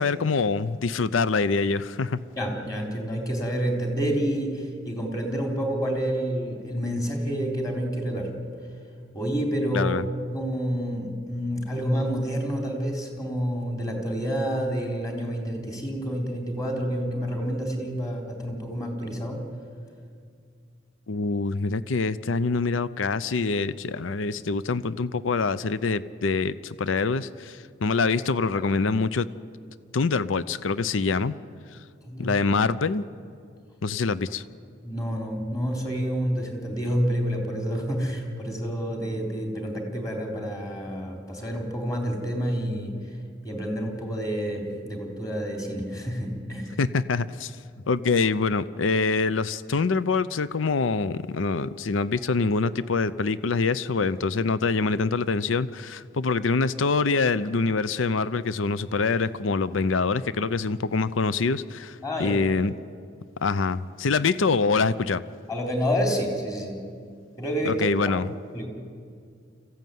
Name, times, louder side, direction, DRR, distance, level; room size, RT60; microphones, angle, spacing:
voice 1, 0.0-2.2 9.7-10.0 21.1-29.3 29.9-31.4 32.2-33.0 33.8-34.4 46.8-47.6 47.9-62.7 63.4-65.2 67.6-68.3, left 4 dB, 85° left, 16 dB, 0.6 m, -25 dB
voice 2, 2.4-8.3 9.1-9.9 10.3-19.4 28.6-28.7 32.1-32.4 34.8-43.0 43.4-46.8 62.0-62.4 65.5-66.8 67.4-68.2 68.5-68.7, equal, 20° left, 2 dB, 3.8 m, -28 dB
26.0 x 15.5 x 9.3 m, 2.3 s
head